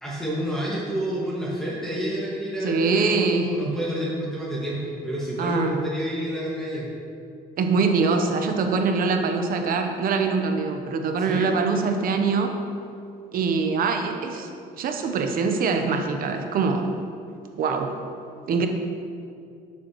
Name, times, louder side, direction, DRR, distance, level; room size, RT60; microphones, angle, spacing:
voice 1, 0.0-6.9 11.3-11.5, equal, 5° left, -7 dB, 1.9 m, -29 dB
voice 2, 2.6-3.5 5.4-5.7 7.6-12.6 13.3-14.5 14.8-16.9 17.6-17.9 18.5-18.7, right 4 dB, 60° right, 5 dB, 1.0 m, -23 dB
11.5 x 6.9 x 3.1 m, 2.4 s
cardioid pair, 110°, 17 cm